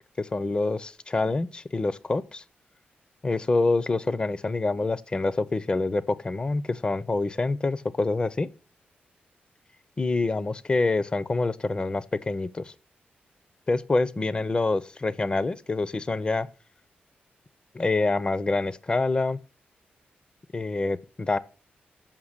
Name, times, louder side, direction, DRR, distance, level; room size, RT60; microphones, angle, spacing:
voice 1, 0.2-2.4 3.2-8.5 10.0-12.7 13.7-16.5 17.7-19.4 20.5-21.4, left 3 dB, 25° left, 0.4 m, -26 dB
7.3 x 5.5 x 6.5 m
wide cardioid pair, 110°, 4 cm